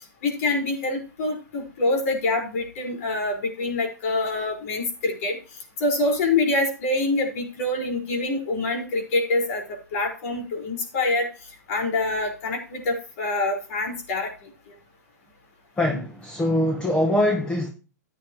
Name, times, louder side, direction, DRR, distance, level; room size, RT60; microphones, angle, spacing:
voice 1, 0.2-5.4 5.8-9.6 9.9-11.3 11.7-14.3, left 2 dB, 55° left, 1 dB, 5.2 m, -25 dB
voice 2, 15.8-17.7, left 1 dB, 10° left, 3 dB, 1.4 m, -23 dB
13.5 x 9.2 x 3.1 m, 0.34 s
hypercardioid pair, 130°, 9 cm